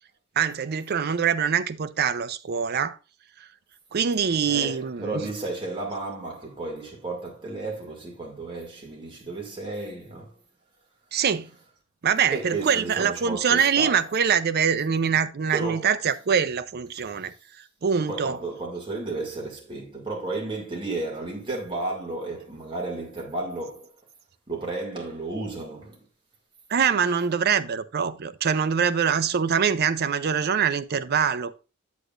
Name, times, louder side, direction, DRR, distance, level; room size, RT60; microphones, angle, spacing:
voice 1, 0.4-3.0 3.9-5.3 11.1-11.5 12.0-17.3 17.8-18.4 26.7-31.6, right 7 dB, 50° right, 0.5 m, -24 dB
voice 2, 4.4-10.3 12.3-14.1 15.5-15.9 18.1-23.9 24.5-26.0, right 2 dB, 25° right, 2.1 m, -33 dB
8.2 x 8.0 x 2.4 m
head